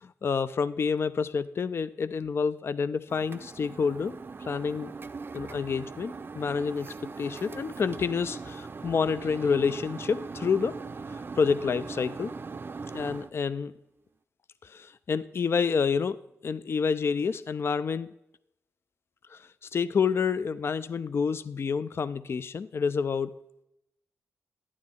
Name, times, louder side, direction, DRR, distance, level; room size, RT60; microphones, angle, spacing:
voice 1, 0.0-4.1 4.4-4.9 5.3-10.8 11.1-12.3 12.9-13.7 14.6-18.1 19.3-23.3, left 5 dB, 50° left, 15 dB, 0.3 m, -28 dB
sound 1, 3.1-13.3, right 4 dB, 40° right, 0.4 m, -40 dB
11.5 x 9.6 x 3.6 m, 0.84 s
cardioid pair, 65°, 5 cm